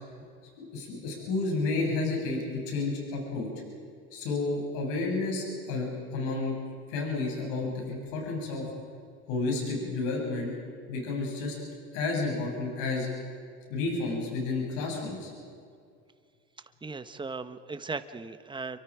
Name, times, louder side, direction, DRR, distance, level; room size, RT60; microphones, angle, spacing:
voice 1, 0.6-3.5 4.1-6.6 6.9-8.8 9.3-10.5 10.9-11.5 11.9-13.1 13.7-15.3, left 3 dB, 75° left, -1 dB, 7.6 m, -31 dB
voice 2, 16.8-18.8, right 4 dB, 15° right, 10 dB, 1.3 m, -37 dB
29.0 x 24.0 x 5.1 m, 2.2 s
supercardioid pair, 100°, 32 cm